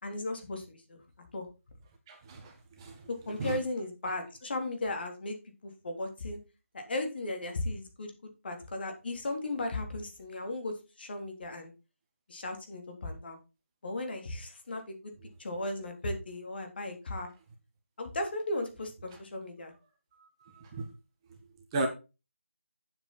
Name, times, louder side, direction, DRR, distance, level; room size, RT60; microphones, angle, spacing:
voice 1, 0.0-1.0 1.3-1.5 3.1-5.4 5.6-6.4 6.7-11.7 12.3-13.4 13.8-15.1 15.4-17.3 18.0-19.7, left 2 dB, 45° left, 4 dB, 3.5 m, -36 dB
voice 2, 2.1-3.0 3.4-3.6 20.6-20.9 21.7-21.9, right 2 dB, 20° right, 3 dB, 1.6 m, -34 dB
9.6 x 7.8 x 4.3 m, 0.29 s
figure-of-eight pair, 160°, 7 cm